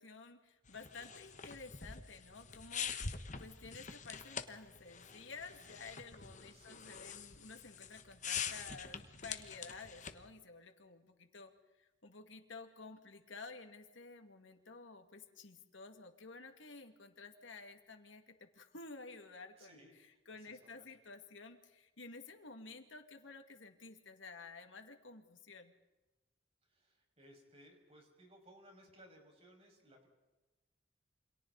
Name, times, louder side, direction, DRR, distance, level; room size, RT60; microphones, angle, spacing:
voice 1, 0.0-11.5 11.8-19.8 20.3-25.7, left 4 dB, 85° left, 5 dB, 2.3 m, -52 dB
sound 1, 0.7-10.3, left 6 dB, 40° left, 1.4 m, -45 dB
voice 2, 6.5-6.9 19.6-20.9 26.6-30.1, equal, 35° right, 1 dB, 6.1 m, -62 dB
28.5 x 26.5 x 4.1 m, 1.1 s
head